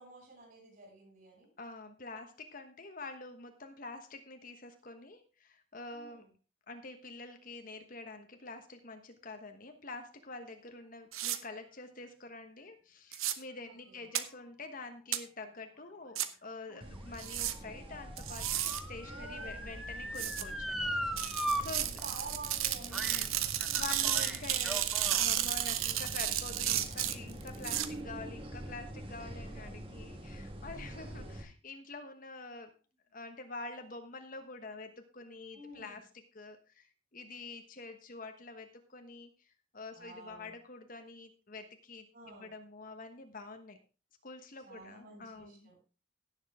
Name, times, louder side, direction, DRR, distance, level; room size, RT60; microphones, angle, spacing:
voice 1, 0.0-1.5 5.9-6.3 13.6-14.1 16.7-17.0 19.0-19.8 21.8-24.0 29.5-29.7 30.8-31.4 35.5-36.0 39.9-40.5 42.1-42.5 44.7-45.8, right 2 dB, 45° right, 0 dB, 7.3 m, -51 dB
voice 2, 1.6-6.3 6.7-20.9 21.1-22.0 22.8-23.4 23.7-24.9 25.2-32.7 33.1-43.8 44.2-45.7, left 3 dB, 40° left, 6 dB, 1.2 m, -47 dB
sound 1, 11.1-11.4 13.1-13.3 14.1-14.2 15.1-15.2 16.1-16.3 17.2-17.5 18.2-18.8 20.1-20.4 21.2-27.9, right 12 dB, 80° right, 1.0 m, -33 dB
Motor vehicle (road) / Siren, 16.4-21.6 22.0-22.1 22.9-23.3 23.6-25.3 26.0-26.1, equal, ahead, 0.9 m, -39 dB
sound 2, 16.8-31.4, right 1 dB, 25° right, 1.7 m, -46 dB
16.5 x 7.2 x 3.6 m, 0.32 s
head